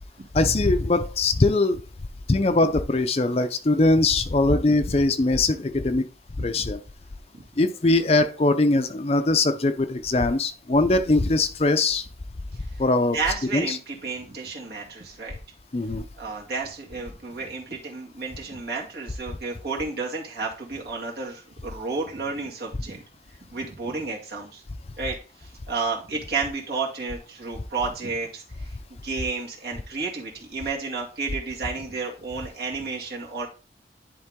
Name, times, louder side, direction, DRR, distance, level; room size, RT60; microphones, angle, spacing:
voice 1, 0.3-1.8 2.3-6.0 6.4-6.8 7.6-12.0 12.8-13.2 13.5-13.8 15.7-16.1, left 2 dB, 35° left, 10 dB, 0.5 m, -21 dB
voice 2, 13.1-15.4 16.2-23.0 23.5-24.6 25.0-28.7 29.0-33.5, right 4 dB, 60° right, -2 dB, 2.2 m, -31 dB
10.5 x 3.8 x 3.7 m, 0.35 s
head